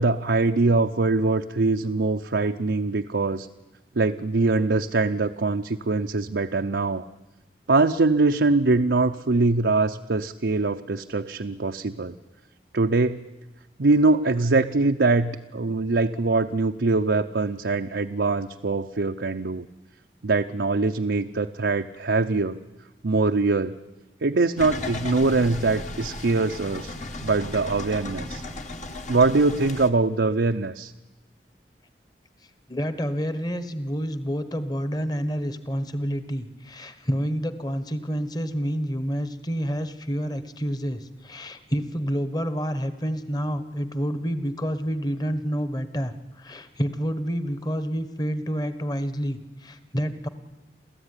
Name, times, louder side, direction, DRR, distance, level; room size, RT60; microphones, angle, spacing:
voice 1, 0.0-3.5 4.0-7.1 7.7-12.2 12.7-13.2 13.8-19.7 20.2-22.6 23.0-23.8 24.2-26.9 27.2-28.4 29.1-30.9, right 3 dB, 80° right, 4 dB, 0.7 m, -23 dB
sound 1, 24.6-29.9, left 2 dB, 45° left, 1.6 m, -35 dB
voice 2, 32.7-50.3, equal, 25° left, 11 dB, 1.4 m, -28 dB
28.5 x 14.0 x 9.9 m, 1.1 s
head